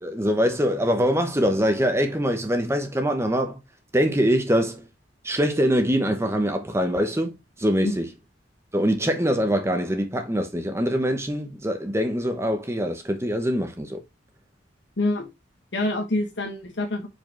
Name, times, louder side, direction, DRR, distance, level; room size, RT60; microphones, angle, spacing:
voice 1, 0.0-3.6 3.9-4.8 5.2-8.1 8.7-14.0, equal, 15° right, 0.9 m, -23 dB
voice 2, 15.0-15.3 15.7-17.1, left 2 dB, 75° left, 1.3 m, -26 dB
5.1 x 4.8 x 4.4 m
head